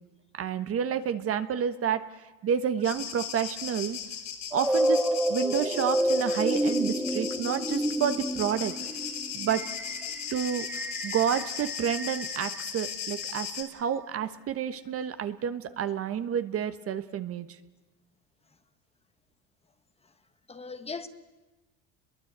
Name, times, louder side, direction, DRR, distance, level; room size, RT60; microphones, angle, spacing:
voice 1, 0.3-2.0 2.4-4.0 4.5-5.0 5.3-8.7 9.3-9.6 10.3-10.7 11.0-17.5, right 8 dB, 40° right, 1.3 m, -29 dB
sound 1, 2.8-13.6, left 8 dB, 50° left, 4.0 m, -37 dB
sound 2, 4.5-13.5, right 1 dB, 5° right, 2.0 m, -30 dB
voice 2, 20.5-21.1, left 4 dB, 15° left, 1.4 m, -39 dB
29.0 x 22.5 x 8.2 m
supercardioid pair, 125°, 36 cm